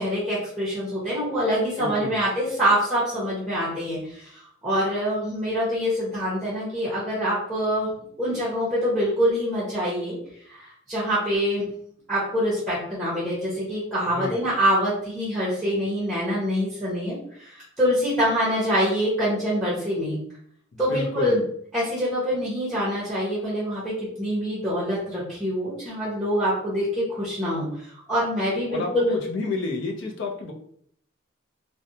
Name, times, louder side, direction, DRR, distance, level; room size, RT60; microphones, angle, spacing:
voice 1, 0.0-7.9 8.2-10.2 10.5-11.7 12.1-20.2 20.8-21.4 21.7-29.2, equal, ahead, -8 dB, 0.8 m, -25 dB
voice 2, 1.8-2.2 14.1-14.3 20.7-21.4 28.7-28.9 29.3-30.5, left 3 dB, 65° left, 2 dB, 0.5 m, -30 dB
2.6 x 2.1 x 2.7 m, 0.65 s
head